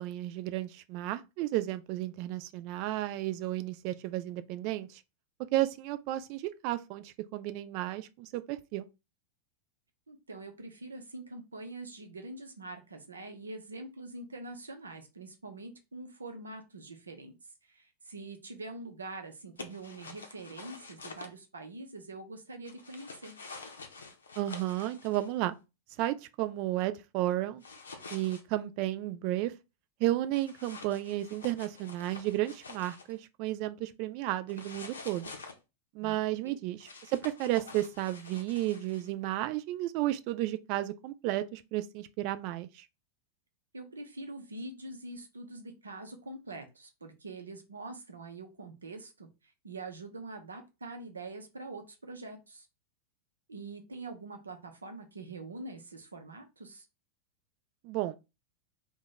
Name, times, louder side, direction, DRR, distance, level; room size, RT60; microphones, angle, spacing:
voice 1, 0.0-5.0 5.4-8.9 24.4-25.6 26.0-27.6 28.1-29.5 30.0-35.3 35.9-42.8 57.8-58.2, right 15 dB, 45° right, 0.3 m, -33 dB
voice 2, 10.1-17.3 17.6-23.3 36.0-36.5 43.7-52.7 53.5-56.9, right 2 dB, 75° right, 0.7 m, -44 dB
sound 1, 19.6-21.3 22.6-25.3 27.6-28.4 30.3-33.1 34.5-35.5 36.8-39.1, left 4 dB, 70° left, 0.6 m, -48 dB
2.9 x 2.2 x 3.9 m
figure-of-eight pair, 90°, 0 cm